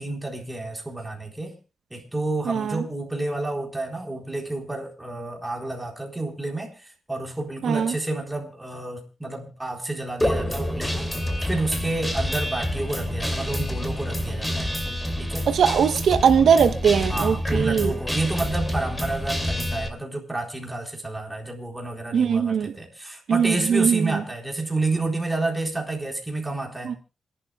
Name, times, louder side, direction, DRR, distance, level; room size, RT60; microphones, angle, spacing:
voice 1, 0.0-1.6 1.9-14.7 15.2-15.5 17.1-27.0, right 2 dB, 10° right, 3.9 m, -30 dB
voice 2, 2.5-2.8 7.6-7.9 15.5-17.9 22.1-22.7 23.3-24.1 26.8-27.0, right 7 dB, 80° right, 1.0 m, -20 dB
Guitar, 10.2-19.9, equal, 10° left, 2.6 m, -27 dB
27.5 x 11.5 x 2.3 m
cardioid pair, 85°, 0 cm